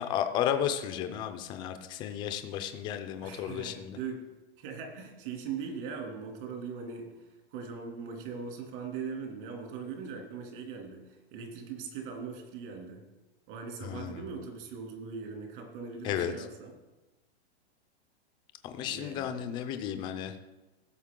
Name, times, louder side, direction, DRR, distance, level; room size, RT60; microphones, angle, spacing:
voice 1, 0.0-4.0 13.8-14.2 16.0-16.3 18.6-20.4, left 10 dB, 15° left, 8 dB, 0.4 m, -33 dB
voice 2, 3.2-4.3 4.6-13.0 13.5-16.7 18.8-19.4, right 5 dB, 50° right, 1 dB, 2.7 m, -40 dB
16.5 x 6.6 x 3.7 m, 1.1 s
supercardioid pair, 155°, 33 cm